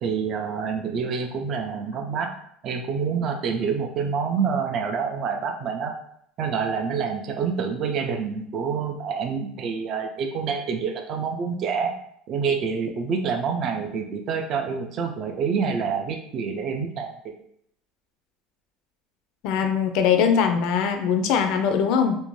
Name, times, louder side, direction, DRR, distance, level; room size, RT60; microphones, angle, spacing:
voice 1, 0.0-2.3 2.6-5.9 6.4-11.9 12.3-17.1, right 6 dB, 45° right, 4 dB, 0.4 m, -27 dB
voice 2, 19.4-22.2, left 7 dB, 65° left, 6 dB, 0.4 m, -21 dB
2.5 x 2.1 x 3.1 m, 0.69 s
cardioid pair, 140°, 0 cm